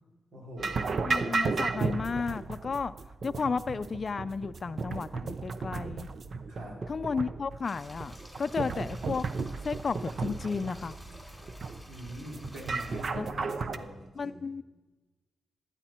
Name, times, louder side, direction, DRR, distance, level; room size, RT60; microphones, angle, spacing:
voice 1, 0.3-0.9 1.4-1.6 6.5-6.8 11.9-14.4, equal, 80° right, -1 dB, 3.4 m, -44 dB
sound 1, 0.6-13.8, right 4 dB, 55° right, 0.7 m, -34 dB
voice 2, 1.0-2.9 3.2-6.1 6.9-9.3 9.6-11.0 13.1-13.3 14.2-14.6, left 5 dB, 45° left, 12 dB, 0.4 m, -33 dB
sound 2, 7.6-13.0, left 1 dB, 5° left, 2.9 m, -50 dB
15.0 x 11.0 x 4.4 m, 1.2 s
cardioid pair, 70°, 0 cm